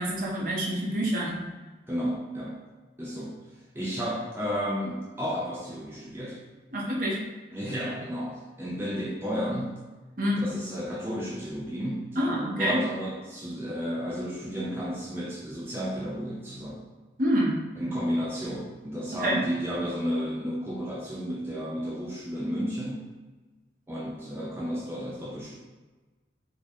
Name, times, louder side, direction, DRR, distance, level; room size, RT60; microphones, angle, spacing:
voice 1, 0.0-1.4 6.7-7.2 10.2-10.4 12.2-12.8 17.2-17.6 19.2-19.4, equal, 45° right, -3 dB, 0.7 m, -27 dB
voice 2, 1.9-2.5 3.0-3.3 3.7-6.4 7.5-9.7 10.4-16.8 17.8-23.0 23.9-25.6, equal, 10° right, -6 dB, 0.3 m, -32 dB
3.6 x 2.1 x 3.4 m, 1.2 s
head